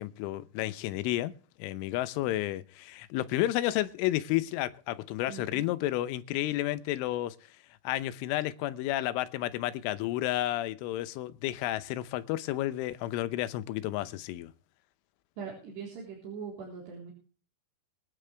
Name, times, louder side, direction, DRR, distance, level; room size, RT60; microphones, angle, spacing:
voice 1, 0.0-1.3 1.6-7.4 7.8-14.5, left 15 dB, 90° left, 3.3 m, -31 dB
voice 2, 5.3-5.7 15.4-17.1, right 6 dB, 60° right, 5.8 m, -41 dB
23.5 x 10.0 x 3.4 m
omnidirectional pair, 5.5 m